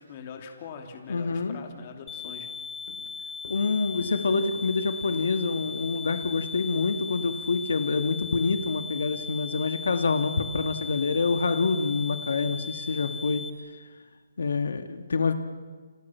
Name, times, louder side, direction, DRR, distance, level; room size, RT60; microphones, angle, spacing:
voice 1, 0.0-2.5, left 6 dB, 25° left, 4 dB, 2.8 m, -43 dB
voice 2, 1.1-1.6 3.5-13.4 14.4-15.3, left 4 dB, 75° left, 7 dB, 2.2 m, -26 dB
Walk footsteps, 1.7-1.9 2.3-2.6 2.9-7.5, left 4 dB, 60° left, 4.4 m, -51 dB
sound 1, 2.1-13.5, left 5 dB, 10° left, 1.7 m, -38 dB
30.0 x 28.5 x 5.9 m, 1.5 s
hypercardioid pair, 175°, 0 cm